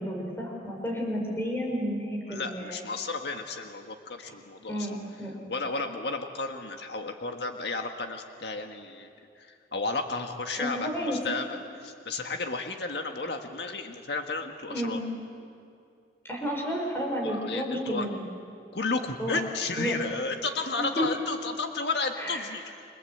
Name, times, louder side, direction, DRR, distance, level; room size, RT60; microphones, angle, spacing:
voice 1, 0.0-2.8 4.7-5.3 10.6-11.2 14.7-15.0 16.2-18.2 19.2-19.4 19.8-20.0 20.8-21.1 22.2-22.4, equal, 15° left, 0 dB, 5.0 m, -31 dB
voice 2, 2.3-5.0 5.5-9.1 9.4-11.4 11.7-15.0 17.2-18.1 18.7-22.7, left 3 dB, 75° left, 4 dB, 1.7 m, -33 dB
30.0 x 25.0 x 8.0 m, 2.4 s
head